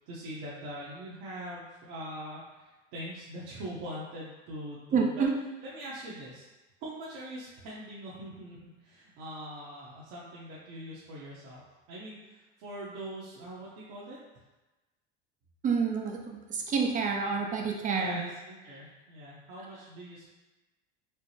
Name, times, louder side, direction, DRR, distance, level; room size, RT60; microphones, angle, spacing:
voice 1, 0.1-5.2 5.6-6.5 6.8-14.2 17.9-20.3, right 1 dB, 55° right, -7 dB, 0.9 m, -42 dB
voice 2, 4.9-5.4 15.6-18.2, right 5 dB, 20° right, 2 dB, 0.4 m, -28 dB
4.4 x 2.0 x 3.1 m, 1.1 s
supercardioid pair, 105°, 38 cm